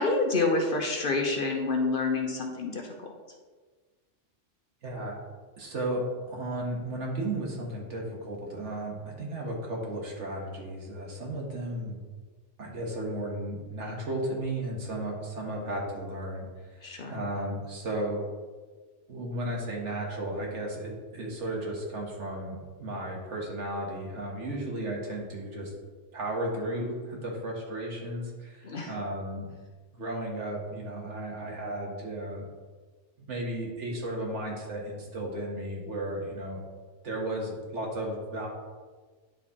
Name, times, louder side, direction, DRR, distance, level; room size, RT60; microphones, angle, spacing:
voice 1, 0.0-3.1 16.8-17.2 28.6-28.9, left 3 dB, 50° left, 2 dB, 1.0 m, -28 dB
voice 2, 4.8-5.2 5.6-12.0 12.6-16.5 16.7-18.2 19.1-25.7 26.1-29.5 29.9-32.5 33.3-36.7 37.0-38.5, right 1 dB, 75° right, -1 dB, 1.7 m, -34 dB
10.0 x 4.2 x 3.6 m, 1.4 s
omnidirectional pair, 1.2 m